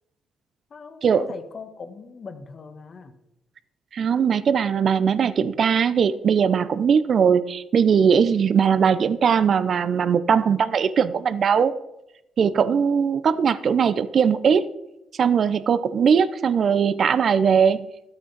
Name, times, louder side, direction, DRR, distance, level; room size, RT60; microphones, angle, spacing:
voice 1, 0.7-3.1, left 4 dB, 45° left, 8 dB, 1.3 m, -39 dB
voice 2, 3.9-11.7 12.4-14.7 15.2-17.9, right 7 dB, 55° right, 15 dB, 0.6 m, -20 dB
13.0 x 8.7 x 4.0 m, 0.90 s
cardioid pair, 90°, 0 cm